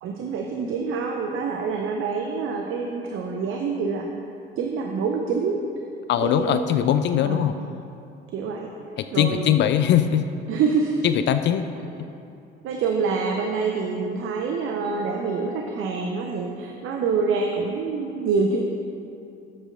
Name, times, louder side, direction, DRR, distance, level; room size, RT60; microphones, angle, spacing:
voice 1, 0.0-4.1 4.6-5.6 6.2-6.6 7.2-7.4 8.3-8.7 9.1-9.5 10.5-11.0 12.6-18.6, right 5 dB, 45° right, 2 dB, 0.7 m, -26 dB
voice 2, 6.1-7.5 9.0-10.3 11.0-11.7, left 10 dB, 40° left, 10 dB, 0.4 m, -21 dB
14.0 x 8.1 x 2.5 m, 2.7 s
figure-of-eight pair, 55°, 31 cm